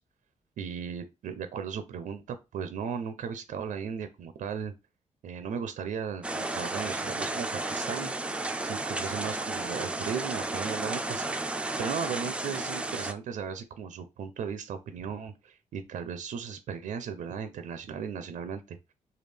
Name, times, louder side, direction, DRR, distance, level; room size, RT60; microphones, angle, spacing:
voice 1, 0.6-4.7 5.2-8.1 8.6-11.5 11.8-18.8, right 7 dB, 85° right, 9 dB, 0.4 m, -36 dB
sound 1, 6.2-13.1, right 2 dB, 10° right, 0.3 m, -33 dB
3.3 x 2.3 x 3.3 m, 0.25 s
wide cardioid pair, 135°, 13 cm